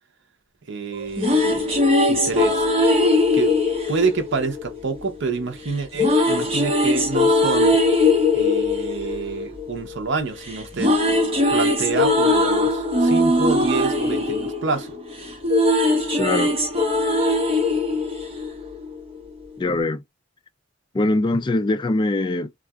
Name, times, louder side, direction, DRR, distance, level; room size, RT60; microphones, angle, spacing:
voice 1, 0.7-1.7 2.1-2.7 3.3-3.5 3.9-7.8 8.3-11.0 11.5-15.0, right 4 dB, 65° right, 0.7 m, -27 dB
sound 1, 0.9-5.1 5.9-10.2 10.5-19.0, left 2 dB, 30° right, 1.1 m, -20 dB
voice 2, 16.2-16.6 19.6-20.0 20.9-22.6, left 2 dB, 25° left, 0.3 m, -22 dB
2.7 x 2.4 x 2.3 m
head